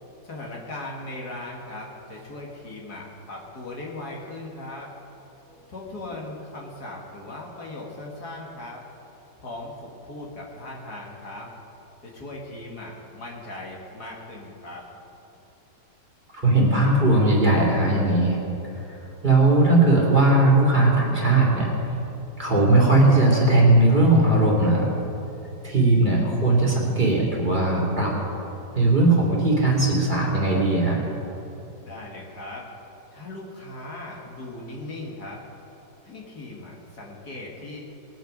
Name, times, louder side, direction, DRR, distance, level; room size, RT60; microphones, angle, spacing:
voice 1, 0.2-4.9 5.7-8.8 9.4-11.5 12.0-14.8 31.8-32.7 33.1-35.4 36.0-37.8, left 2 dB, 60° left, -2 dB, 2.2 m, -38 dB
voice 2, 16.3-18.4 18.7-19.0 19.2-21.7 22.4-24.9 25.6-28.1 28.7-31.0, right 2 dB, 25° right, -4 dB, 2.7 m, -19 dB
20.5 x 9.3 x 5.2 m, 3.0 s
omnidirectional pair, 2.0 m